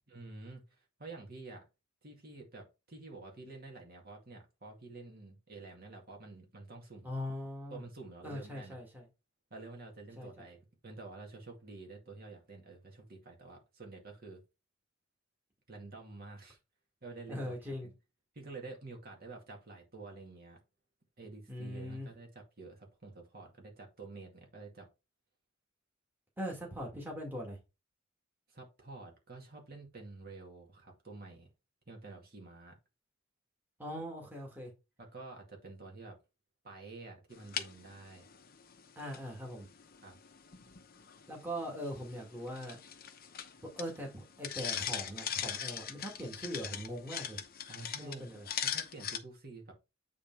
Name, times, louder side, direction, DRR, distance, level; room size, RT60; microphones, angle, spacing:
voice 1, 0.1-1.6 2.0-7.1 7.7-8.8 9.5-14.4 15.7-16.6 17.0-17.9 18.3-20.6 21.2-24.9 28.5-31.5 31.9-32.8 35.0-36.2 36.6-38.3 40.0-40.2 47.7-48.2 48.6-49.7, right 3 dB, 50° right, 2.2 m, -49 dB
voice 2, 7.0-7.8 8.2-9.0 10.2-10.5 17.3-17.9 21.5-22.1 26.4-27.6 33.8-34.7 39.0-39.7 41.3-42.8 43.8-47.4 48.0-48.5, equal, 10° right, 1.9 m, -41 dB
sound 1, 37.3-49.2, left 9 dB, 45° left, 0.8 m, -42 dB
8.4 x 3.6 x 4.6 m
head